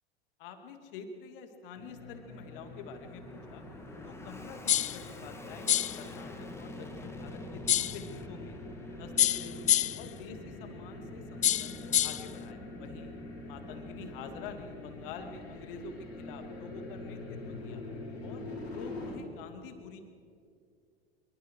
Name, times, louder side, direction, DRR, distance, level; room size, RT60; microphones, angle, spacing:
voice 1, 0.4-3.7 4.0-8.6 9.0-9.5 9.9-13.1 13.5-17.8 18.2-20.0, left 5 dB, 60° left, 6 dB, 2.9 m, -47 dB
sound 1, 1.7-19.2, left 2 dB, 80° left, 5.8 m, -45 dB
Fixed-wing aircraft airplane, 1.9-18.5, left 2 dB, 10° left, 2.9 m, -50 dB
sound 2, 4.7-5.0 5.7-6.0 7.7-8.0 9.2-10.1 11.4-12.3, left 12 dB, 25° left, 0.5 m, -27 dB
25.0 x 23.5 x 5.0 m, 2.4 s
figure-of-eight pair, 80°, 31 cm